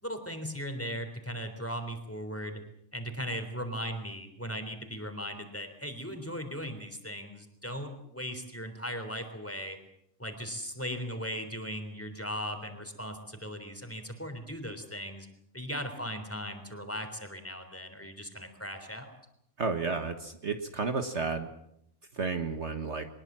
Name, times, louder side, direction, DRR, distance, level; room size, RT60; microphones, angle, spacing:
voice 1, 0.0-2.6 2.9-9.8 10.2-15.3 15.5-19.1, equal, 10° left, 6 dB, 3.5 m, -38 dB
voice 2, 19.6-21.5 22.1-23.1, right 4 dB, 55° right, 7 dB, 1.7 m, -32 dB
23.0 x 21.0 x 7.5 m, 0.74 s
omnidirectional pair, 1.4 m